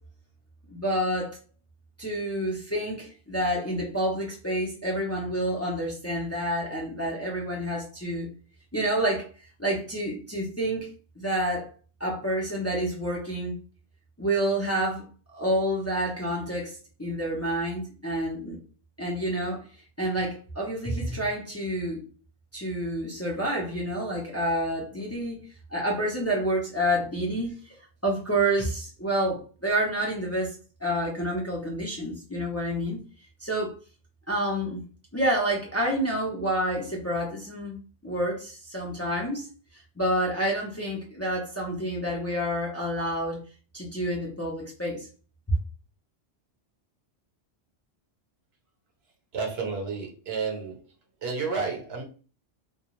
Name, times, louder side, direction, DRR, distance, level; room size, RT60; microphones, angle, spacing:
voice 1, 0.7-1.4 2.0-8.3 8.7-9.3 9.6-11.7 12.0-13.6 14.2-18.6 19.0-19.7 20.0-22.0 22.5-25.4 25.7-27.8 28.0-33.0 33.4-33.7 34.3-34.8 35.1-39.5 40.0-43.4 43.7-45.1 45.5-45.6, right 1 dB, 20° left, 0.5 m, -28 dB
voice 2, 49.3-50.8 51.2-52.0, right 4 dB, 70° right, 1.0 m, -31 dB
2.3 x 2.3 x 3.0 m
omnidirectional pair, 1.1 m